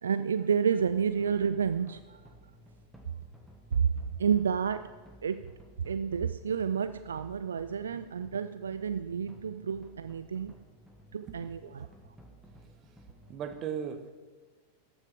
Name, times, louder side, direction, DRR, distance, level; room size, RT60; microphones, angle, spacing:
voice 1, 0.0-2.2 3.8-3.9 4.2-4.9 5.2-5.4 5.8-10.5 11.1-11.9, right 7 dB, 70° right, 12 dB, 0.3 m, -30 dB
sound 1, 0.8-13.6, right 1 dB, 5° right, 1.6 m, -55 dB
voice 2, 11.2-11.7 13.3-14.1, right 8 dB, 35° right, 9 dB, 1.0 m, -38 dB
14.0 x 7.1 x 4.9 m, 1.3 s
figure-of-eight pair, 90°, 0 cm